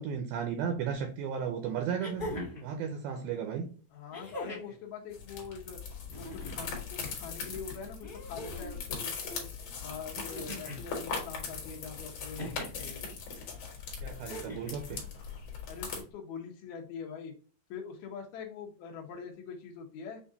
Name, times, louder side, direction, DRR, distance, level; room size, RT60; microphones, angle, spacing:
voice 1, 0.0-2.3 2.6-3.7 14.0-15.0, right 7 dB, 80° right, 6 dB, 2.1 m, -34 dB
sound 1, 0.9-1.0 2.0-2.7 4.1-4.8 6.0-6.8 8.0-8.8 10.1-10.8 12.3-12.9 14.2-14.8 16.1-16.2, equal, 15° left, 0.7 m, -41 dB
voice 2, 3.9-5.8 6.2-9.5 9.8-13.0 15.6-17.3 17.7-20.2, left 6 dB, 85° left, 0 dB, 1.6 m, -43 dB
sound 2, 5.1-16.0, left 5 dB, 60° left, 2.2 m, -40 dB
6.9 x 2.5 x 2.7 m, 0.41 s
omnidirectional pair, 4.7 m